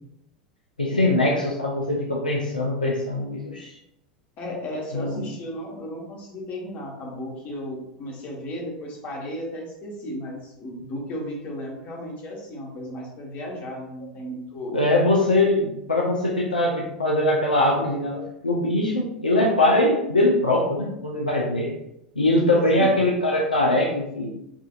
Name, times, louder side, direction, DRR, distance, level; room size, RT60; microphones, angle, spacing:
voice 1, 0.8-3.8 4.9-5.2 14.7-21.7 22.2-24.3, left 1 dB, 80° left, -2 dB, 0.6 m, -22 dB
voice 2, 4.4-14.8 22.7-22.9, equal, 40° left, -2 dB, 1.2 m, -34 dB
4.9 x 2.6 x 2.4 m, 0.82 s
figure-of-eight pair, 85°, 5 cm